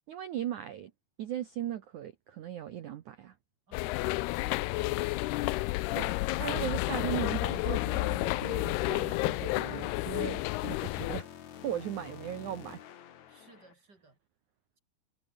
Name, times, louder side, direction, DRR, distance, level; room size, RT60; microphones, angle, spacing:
voice 1, 0.1-0.9 1.2-3.4 5.9-11.3 11.6-12.8, right 11 dB, 75° right, 1.8 m, -38 dB
sound 1, 3.7-11.2, left 21 dB, 85° left, 2.3 m, -31 dB
voice 2, 3.7-5.1 11.8-12.2 13.3-14.2, right 3 dB, 20° right, 5.0 m, -60 dB
sound 2, 7.2-13.7, left 10 dB, 55° left, 2.3 m, -48 dB
omnidirectional pair, 5.2 m